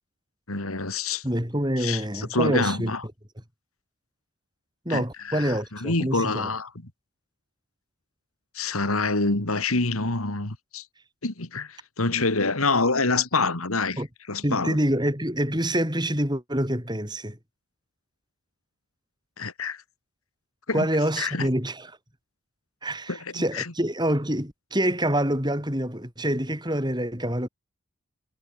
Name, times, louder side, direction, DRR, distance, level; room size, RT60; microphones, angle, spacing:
voice 1, 0.5-1.2 1.8-3.0 4.9-6.7 8.5-10.8 11.2-14.0 14.3-14.8 19.4-19.8 20.7-20.9 21.2-21.5 23.1-23.7, left 3 dB, 85° left, 3.1 m, -26 dB
voice 2, 1.2-2.9 4.9-6.5 14.0-14.1 14.4-17.4 20.7-21.9 22.8-27.5, right 1 dB, 20° right, 7.1 m, -26 dB
head